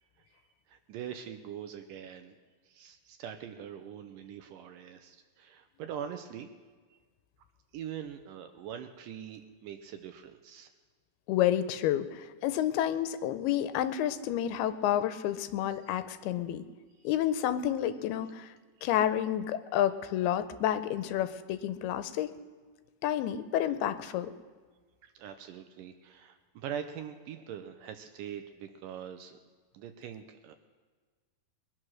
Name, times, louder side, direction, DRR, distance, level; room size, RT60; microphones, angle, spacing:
voice 1, 0.7-2.4 2.7-6.5 7.7-10.7 17.0-17.1 25.0-29.4 29.7-30.6, right 9 dB, 75° right, 8 dB, 2.1 m, -43 dB
voice 2, 11.3-16.6 17.0-18.5 18.8-22.3 23.0-24.3, left 11 dB, 85° left, 11 dB, 2.6 m, -30 dB
22.0 x 8.9 x 6.3 m, 1.4 s
omnidirectional pair, 4.5 m